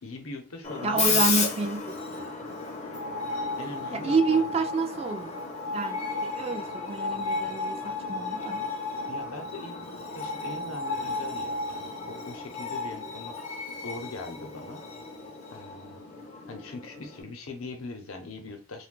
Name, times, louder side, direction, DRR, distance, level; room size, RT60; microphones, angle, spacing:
voice 1, 0.0-1.3 3.4-4.6 9.1-13.3 13.8-14.8 15.5-16.0 16.5-18.9, left 2 dB, 75° left, 0.7 m, -41 dB
Screech, 0.6-17.2, left 4 dB, 30° left, 0.5 m, -33 dB
voice 2, 0.8-1.8 3.9-5.3 5.7-8.7, right 4 dB, 30° right, 0.3 m, -28 dB
2.6 x 2.2 x 3.7 m
head